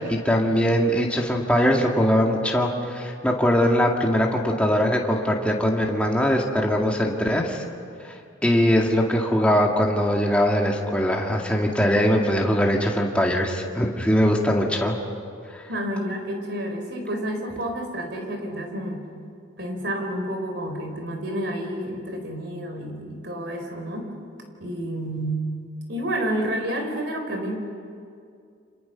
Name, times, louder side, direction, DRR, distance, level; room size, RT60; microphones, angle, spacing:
voice 1, 0.1-7.6 8.0-8.1 8.4-15.0, equal, 5° left, -1 dB, 2.1 m, -21 dB
voice 2, 15.7-19.1 19.6-24.1 24.6-25.5 25.9-27.6, right 1 dB, 60° right, 4 dB, 4.5 m, -29 dB
29.5 x 27.0 x 5.9 m, 2.3 s
head